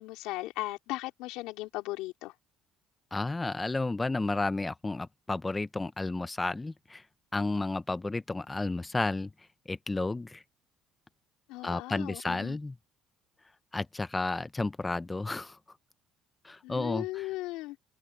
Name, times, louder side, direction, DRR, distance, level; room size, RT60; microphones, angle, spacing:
voice 1, 0.0-2.3 11.5-12.6 16.6-17.8, left 19 dB, 85° left, 3.9 m, -37 dB
voice 2, 3.1-7.0 7.3-9.3 9.7-10.4 11.6-12.7 13.7-15.6 16.4-17.3, left 2 dB, 15° left, 0.6 m, -32 dB
open air
cardioid pair, 105°, 0 cm